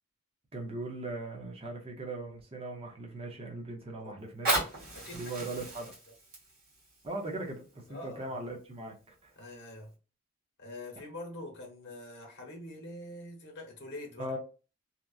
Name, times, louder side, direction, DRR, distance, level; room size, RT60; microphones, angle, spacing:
voice 1, 0.5-4.6 5.1-5.9 7.0-9.0 9.2-9.3 14.2-14.4, right 2 dB, 25° right, 0.6 m, -39 dB
Fire, 4.2-9.2 9.8-9.9, right 2 dB, 45° right, 1.5 m, -36 dB
voice 2, 4.9-5.5 5.8-5.9 7.9-8.3 9.4-9.9 10.6-14.3, left 1 dB, 55° left, 1.0 m, -45 dB
2.8 x 2.4 x 2.3 m
head